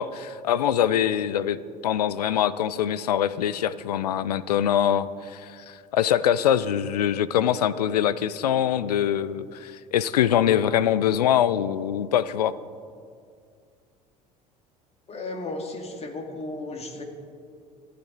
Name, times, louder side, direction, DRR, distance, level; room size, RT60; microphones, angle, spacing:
voice 1, 0.0-12.5, left 10 dB, 80° left, 18 dB, 0.5 m, -23 dB
voice 2, 15.1-17.0, left 2 dB, 30° left, 3 dB, 2.6 m, -34 dB
26.5 x 10.0 x 4.0 m, 2.2 s
hypercardioid pair, 65°, 20 cm